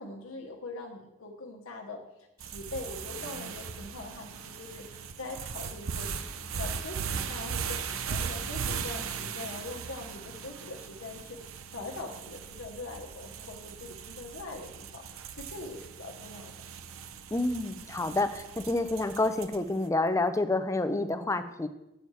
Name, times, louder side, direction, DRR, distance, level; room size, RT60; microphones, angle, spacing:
voice 1, 0.0-15.0 15.4-16.5, left 2 dB, 70° left, 1 dB, 1.0 m, -42 dB
sound 1, 2.4-19.8, right 6 dB, 70° right, 0.7 m, -38 dB
voice 2, 17.3-21.7, left 2 dB, 15° left, 9 dB, 0.5 m, -28 dB
8.5 x 7.1 x 4.7 m, 0.89 s
head